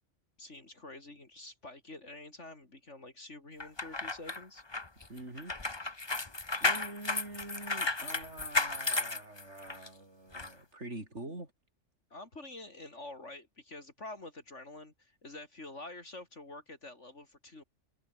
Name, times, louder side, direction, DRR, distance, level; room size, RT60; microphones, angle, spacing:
voice 1, 0.4-4.6 12.1-17.6, left 2 dB, 70° left, 4.6 m, -47 dB
sound 1, 3.6-9.9 10.3-10.5, left 3 dB, 20° left, 1.3 m, -33 dB
voice 2, 5.1-5.5 6.6-11.5, right 2 dB, 65° right, 6.1 m, -45 dB
omnidirectional pair, 1.3 m